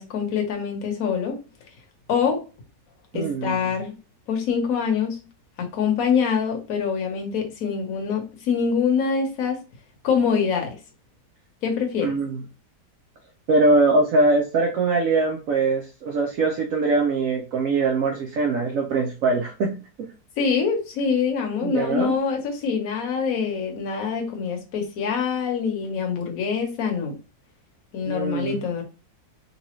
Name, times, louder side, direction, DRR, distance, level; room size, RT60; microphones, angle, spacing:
voice 1, 0.0-1.4 2.1-2.4 3.1-3.9 4.3-5.2 5.6-9.6 10.0-10.7 11.6-12.1 20.4-27.1 27.9-28.8, left 6 dB, 55° left, 2 dB, 1.2 m, -24 dB
voice 2, 3.1-3.7 12.0-12.4 13.5-19.8 21.6-22.2 28.1-28.6, right 3 dB, 65° right, 2 dB, 0.8 m, -22 dB
4.0 x 2.3 x 3.0 m, 0.33 s
omnidirectional pair, 1.9 m